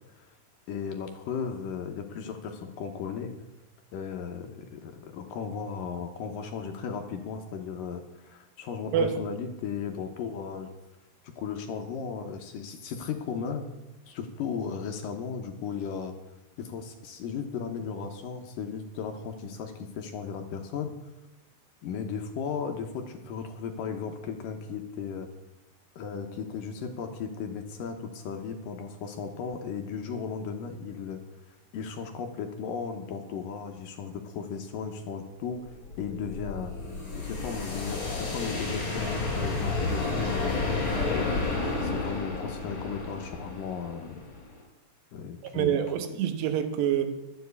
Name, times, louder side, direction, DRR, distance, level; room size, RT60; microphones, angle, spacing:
voice 1, 0.7-3.4 3.9-10.7 11.2-13.7 14.1-16.2 16.6-20.9 21.8-25.3 26.0-31.2 31.7-35.7 36.0-36.7 37.1-41.5 41.8-44.2 45.1-45.8 46.1-46.2, left 6 dB, 70° left, 5 dB, 2.3 m, -36 dB
sound 1, 35.7-44.6, left 3 dB, 35° left, 4.7 m, -31 dB
voice 2, 45.4-47.1, right 9 dB, 90° right, 9 dB, 3.2 m, -27 dB
12.0 x 7.9 x 8.2 m, 1.0 s
omnidirectional pair, 4.7 m